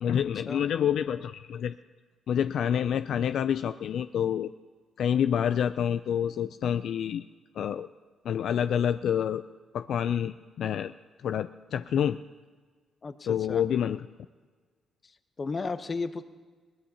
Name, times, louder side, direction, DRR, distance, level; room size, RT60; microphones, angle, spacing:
voice 1, 0.0-1.8 2.3-4.5 5.0-7.2 7.6-7.9 8.2-9.4 9.7-10.9 11.2-12.2 13.3-14.1, left 9 dB, 70° left, 11 dB, 0.3 m, -27 dB
voice 2, 13.0-13.6 15.4-16.2, left 4 dB, 35° left, 11 dB, 0.8 m, -34 dB
21.5 x 18.0 x 2.9 m, 1.5 s
cardioid pair, 85°, 0 cm